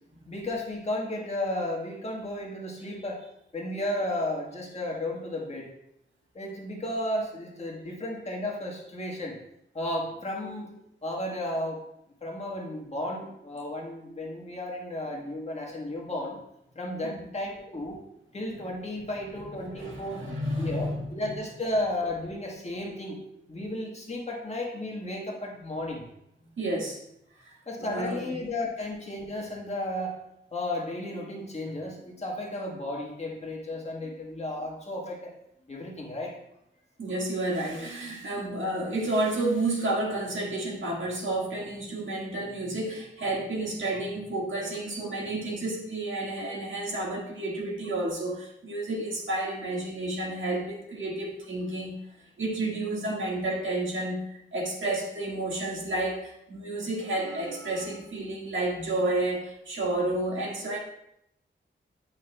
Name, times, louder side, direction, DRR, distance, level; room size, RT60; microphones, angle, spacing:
voice 1, 0.3-3.2 3.5-5.7 6.3-9.4 9.7-10.7 11.0-11.8 12.2-16.4 16.7-18.0 18.3-20.2 20.6-23.2 23.5-26.0 27.7-30.2 30.5-35.3 35.7-36.3, left 1 dB, 35° left, -2 dB, 1.3 m, -33 dB
voice 2, 19.6-21.3 26.6-27.0 27.4-27.5 27.8-28.4 37.0-52.0 52.4-60.8, right 2 dB, 90° right, -3 dB, 1.7 m, -31 dB
9.5 x 5.6 x 2.2 m, 0.78 s
wide cardioid pair, 165°, 19 cm